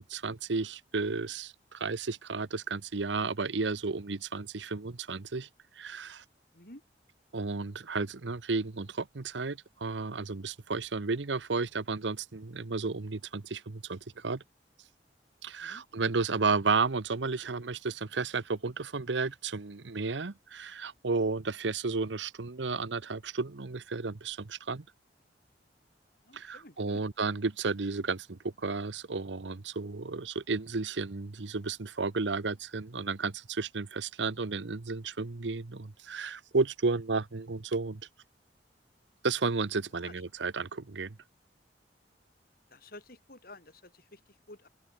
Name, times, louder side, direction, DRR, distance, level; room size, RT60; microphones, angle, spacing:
voice 1, 0.0-5.5 5.8-6.2 7.3-14.4 15.4-24.8 26.3-38.0 39.2-41.2, right 4 dB, 85° right, 0.9 m, -33 dB
voice 2, 15.6-16.1 26.2-27.0 40.0-40.1 42.7-44.7, left 2 dB, 55° left, 7.9 m, -52 dB
open air
head